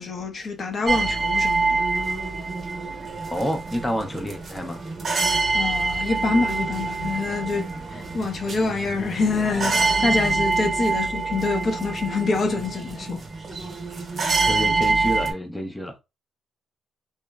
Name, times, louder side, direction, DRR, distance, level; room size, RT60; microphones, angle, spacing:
voice 1, 0.0-1.8 5.5-13.3, left 3 dB, 45° left, 0.7 m, -26 dB
Large prayer wheel, 0.9-15.3, right 3 dB, 40° right, 0.8 m, -26 dB
voice 2, 3.3-4.8 14.4-16.0, equal, 10° left, 0.6 m, -28 dB
2.9 x 2.0 x 2.2 m
cardioid pair, 90°, 0 cm